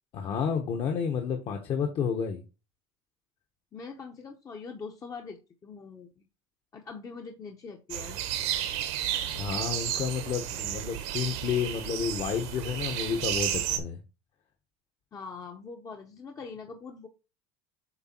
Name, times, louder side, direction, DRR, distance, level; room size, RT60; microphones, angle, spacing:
voice 1, 0.1-2.4 9.3-14.0, left 7 dB, 40° left, 1.1 m, -30 dB
voice 2, 3.7-6.3 6.7-8.2 15.1-17.1, left 5 dB, 25° left, 0.9 m, -43 dB
sound 1, 7.9-13.8, right 11 dB, 80° right, 1.5 m, -32 dB
8.1 x 3.3 x 4.4 m
cardioid pair, 140°, 14 cm